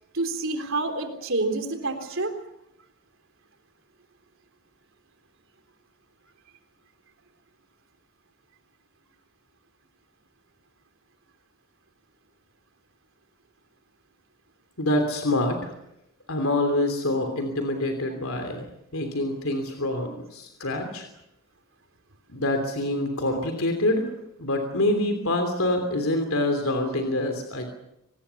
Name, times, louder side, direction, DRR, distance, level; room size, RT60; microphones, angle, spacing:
voice 1, 0.1-2.3, right 2 dB, 65° right, 6 dB, 3.6 m, -28 dB
voice 2, 14.8-15.7 16.3-18.7 18.9-21.1 22.3-24.1 24.4-27.7, left 1 dB, 75° left, 5 dB, 3.1 m, -26 dB
26.0 x 20.0 x 7.1 m, 0.83 s
head